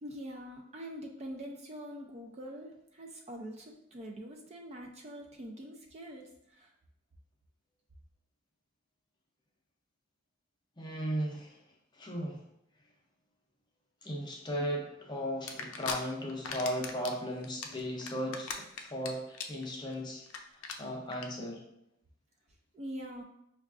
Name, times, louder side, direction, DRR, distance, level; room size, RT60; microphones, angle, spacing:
voice 1, 0.0-6.7 22.7-23.2, equal, 30° right, 2 dB, 0.4 m, -44 dB
voice 2, 10.8-11.6 11.9-12.4 14.0-20.2 20.5-21.6, equal, 20° left, 0 dB, 0.6 m, -36 dB
sound 1, 15.5-16.0 16.3-17.1 17.4-19.1 19.3-19.6 19.9-20.0 20.3-20.4 20.6-20.7 21.1-21.2, left 6 dB, 85° left, 0.4 m, -37 dB
5.5 x 2.3 x 2.4 m, 0.79 s
head